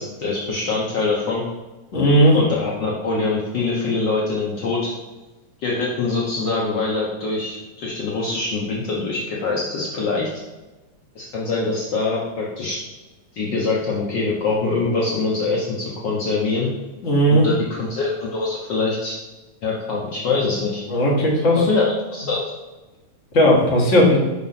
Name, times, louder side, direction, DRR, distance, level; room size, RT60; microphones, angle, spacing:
voice 1, 0.0-1.4 2.3-4.9 5.6-10.3 11.1-12.8 13.3-16.7 17.3-19.2 19.6-20.8 21.7-22.4, left 3 dB, 75° left, -4 dB, 1.0 m, -24 dB
voice 2, 1.9-2.4 17.0-17.5 20.9-21.7 23.3-24.2, equal, 35° left, -3 dB, 1.2 m, -16 dB
5.7 x 4.4 x 5.7 m, 1.1 s
omnidirectional pair, 3.5 m